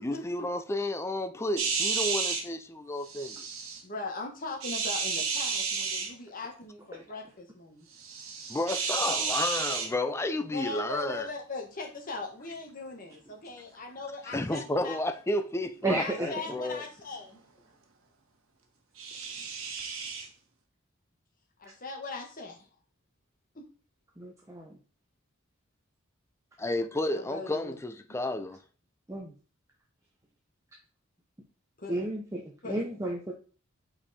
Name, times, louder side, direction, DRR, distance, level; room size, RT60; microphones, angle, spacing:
voice 1, 0.0-3.5 8.5-11.3 14.3-16.8 26.6-28.6, left 1 dB, 15° left, 0.4 m, -31 dB
sound 1, 1.6-2.4 3.1-3.8 4.6-6.1 8.0-9.9 19.0-20.3, right 5 dB, 80° right, 1.3 m, -31 dB
voice 2, 3.8-7.9 10.5-15.0 16.0-17.4 21.6-22.5 23.5-23.6 27.1-27.8 31.8-31.9 32.6-32.8, left 3 dB, 40° left, 1.5 m, -39 dB
voice 3, 15.8-16.3 24.2-24.8 29.1-29.3 31.9-33.3, right 2 dB, 15° right, 0.9 m, -32 dB
5.3 x 4.6 x 4.3 m
head